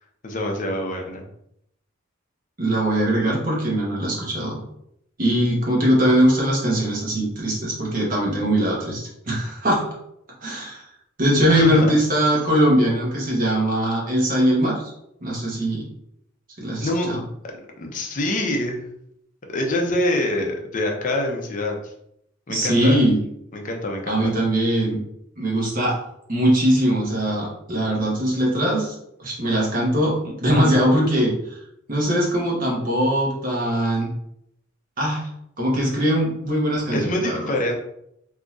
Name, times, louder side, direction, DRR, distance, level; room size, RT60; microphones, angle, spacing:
voice 1, 0.2-1.2 11.5-11.9 16.8-17.1 17.8-18.8 19.5-21.9 22.5-23.0 23.5-24.3 36.9-37.8, left 1 dB, 40° left, 2 dB, 0.6 m, -25 dB
voice 2, 2.6-4.6 5.2-9.9 10.4-10.9 11.2-14.8 15.2-15.9 16.6-17.2 22.5-23.2 24.1-25.0 25.4-26.0 26.3-31.6 31.9-34.1 35.0-35.3 35.6-37.5, right 1 dB, 45° right, -3 dB, 1.1 m, -21 dB
3.8 x 2.8 x 2.4 m, 0.76 s
head